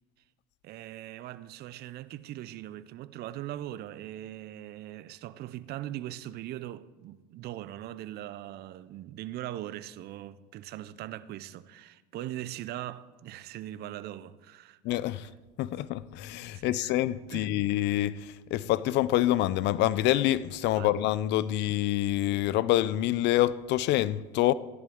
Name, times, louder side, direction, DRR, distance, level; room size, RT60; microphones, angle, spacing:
voice 1, 0.6-14.8 16.5-16.9 17.3-17.6 20.7-20.9, right 13 dB, 50° right, 0.5 m, -40 dB
voice 2, 14.8-15.3 15.6-24.5, left 14 dB, 55° left, 0.5 m, -26 dB
14.5 x 10.5 x 3.7 m
hypercardioid pair, 85°, 21 cm